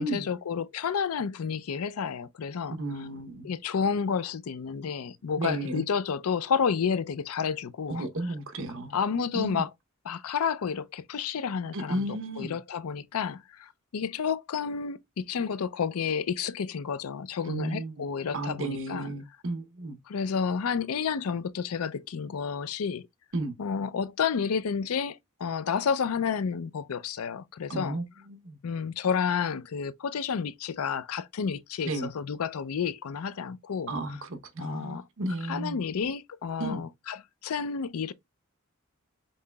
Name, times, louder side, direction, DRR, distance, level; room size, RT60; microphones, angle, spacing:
voice 1, 0.0-2.8 3.4-8.1 8.9-9.7 10.1-19.1 20.1-23.1 23.6-28.0 28.6-33.9 34.6-35.0 35.5-38.1, left 6 dB, 90° left, 0.5 m, -30 dB
voice 2, 2.7-3.5 5.4-5.8 7.9-8.9 9.3-9.6 11.7-12.6 17.5-18.0 18.3-20.0 23.3-23.6 27.7-28.6 31.9-32.1 33.9-35.8 36.6-36.8, right 2 dB, 65° right, 0.9 m, -33 dB
5.5 x 3.8 x 2.3 m
head